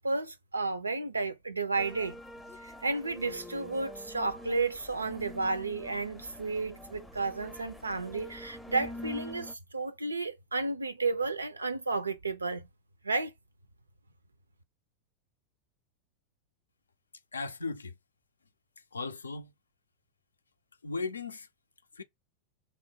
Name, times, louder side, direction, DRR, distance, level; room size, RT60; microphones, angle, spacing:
voice 1, 0.0-2.2 2.6-12.7 13.0-13.3, right 3 dB, 80° right, 0.5 m, -32 dB
sound 1, 1.8-9.5, left 1 dB, ahead, 0.5 m, -46 dB
voice 2, 17.3-17.9 18.9-19.5 20.8-21.5 21.9-22.0, left 4 dB, 75° left, 0.4 m, -36 dB
3.1 x 2.0 x 3.7 m
figure-of-eight pair, 90°, 0 cm